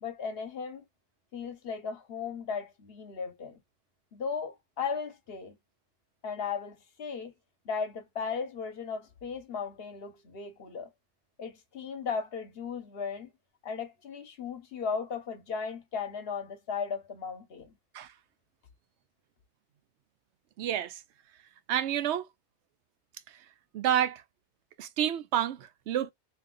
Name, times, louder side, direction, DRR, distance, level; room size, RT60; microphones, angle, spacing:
voice 1, 0.0-0.8 1.3-3.6 4.1-5.6 6.2-7.3 7.6-10.9 11.4-13.3 13.6-17.8, left 5 dB, 60° left, 1.1 m, -36 dB
voice 2, 20.6-21.0 21.7-22.3 23.7-24.2 24.8-26.1, right 10 dB, 85° right, 0.9 m, -29 dB
2.8 x 2.6 x 3.8 m
omnidirectional pair, 1.1 m